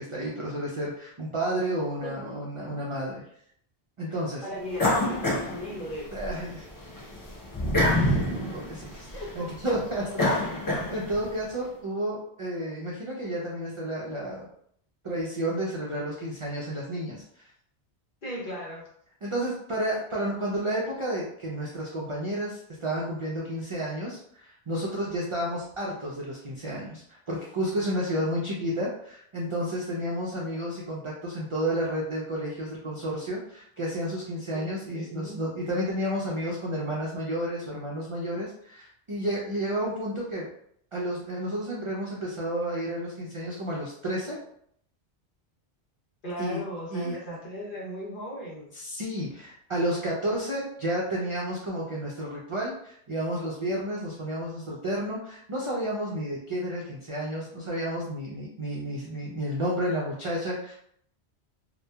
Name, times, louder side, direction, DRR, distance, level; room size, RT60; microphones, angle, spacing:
voice 1, 0.0-3.2 4.0-4.4 6.1-6.7 8.3-10.3 10.9-14.5 15.0-17.5 19.2-40.5 40.9-44.4 46.4-46.6 46.9-47.1 48.7-60.7, right 1 dB, 55° right, -4 dB, 0.3 m, -31 dB
voice 2, 2.0-2.4 4.1-6.6 8.9-9.5 10.5-10.6 18.2-18.9 34.5-34.7 34.9-35.4 46.2-48.7, equal, 55° left, -5 dB, 1.0 m, -38 dB
sound 1, 4.8-6.3 6.7-11.3, left 1 dB, 35° left, 0.3 m, -27 dB
2.8 x 2.2 x 2.2 m, 0.67 s
omnidirectional pair, 1.1 m